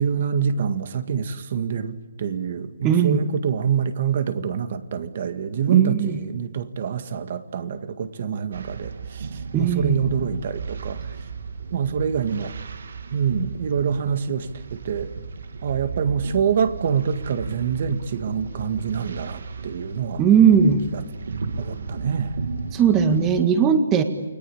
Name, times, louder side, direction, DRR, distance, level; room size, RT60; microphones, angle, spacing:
voice 1, 0.0-9.3 9.6-11.0 11.7-12.5 13.1-15.1 15.6-20.2 20.9-21.0 21.6-22.4, right 7 dB, 35° right, 10 dB, 1.9 m, -25 dB
voice 2, 2.8-3.2 5.7-6.1 9.5-10.0 20.2-20.8 22.7-24.0, right 7 dB, 15° right, 8 dB, 1.8 m, -18 dB
sound 1, 8.5-23.4, right 5 dB, 60° right, 2.6 m, -35 dB
29.0 x 22.0 x 8.8 m, 1.3 s
hypercardioid pair, 175°, 0 cm